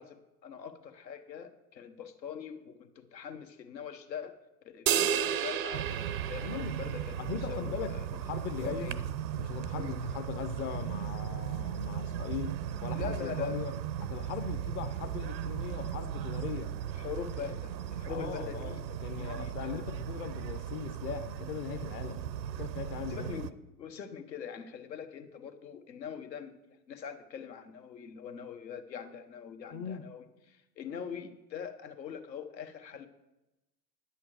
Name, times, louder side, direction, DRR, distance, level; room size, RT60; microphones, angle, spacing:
voice 1, 0.0-4.4 4.6-7.2 7.5-8.1 8.6-9.0 9.8-10.0 12.9-13.6 16.9-18.8 19.1-19.8 23.1-23.5 23.8-33.1, left 7 dB, 80° left, 7 dB, 1.2 m, -43 dB
sound 1, 4.9-7.4, right 9 dB, 25° right, 0.4 m, -31 dB
sound 2, 5.7-23.5, right 10 dB, 80° right, 0.7 m, -37 dB
voice 2, 6.4-6.8 7.2-8.9 9.4-13.7 14.0-16.7 17.4-17.6 18.1-22.2 22.6-23.3 29.7-30.1, left 7 dB, 25° left, 7 dB, 0.6 m, -39 dB
10.0 x 8.4 x 4.8 m, 0.98 s
hypercardioid pair, 95°, 50 cm